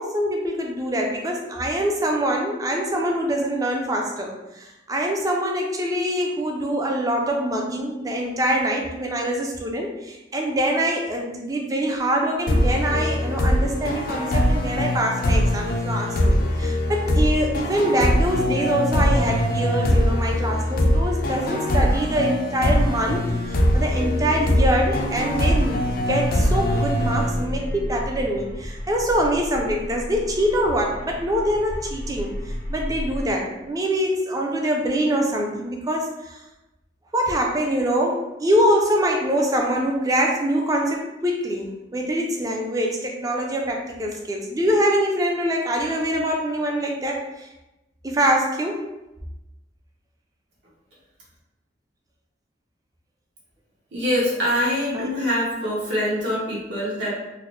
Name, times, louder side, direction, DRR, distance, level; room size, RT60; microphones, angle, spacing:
voice 1, 0.0-25.8 26.1-36.4 37.1-47.5 48.0-48.8 54.9-55.1, equal, 20° right, 1 dB, 0.4 m, -24 dB
sound 1, 12.5-27.9, left 1 dB, 50° left, 0.4 m, -22 dB
sound 2, 22.8-33.3, equal, 85° left, 0.7 m, -34 dB
voice 2, 53.9-57.1, equal, 70° right, -6 dB, 1.3 m, -24 dB
3.9 x 2.1 x 3.0 m, 0.98 s
head